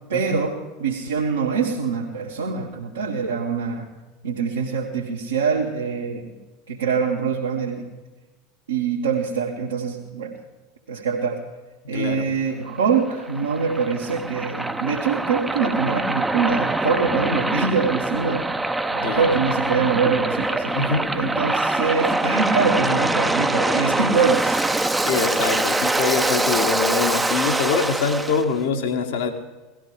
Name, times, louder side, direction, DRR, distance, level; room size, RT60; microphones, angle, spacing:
voice 1, 0.1-3.9 4.2-6.4 6.7-7.9 8.7-10.3 10.9-11.4 11.9-20.9 21.1-24.6, right 5 dB, 75° right, -3 dB, 1.6 m, -24 dB
voice 2, 11.9-12.3 18.9-19.3 20.7-21.1 25.0-29.3, left 5 dB, 60° left, 5 dB, 1.6 m, -24 dB
Waves surf, 12.7-28.4, right 2 dB, 10° right, 0.7 m, -24 dB
17.5 x 13.5 x 4.9 m, 1.2 s
figure-of-eight pair, 75°, 0 cm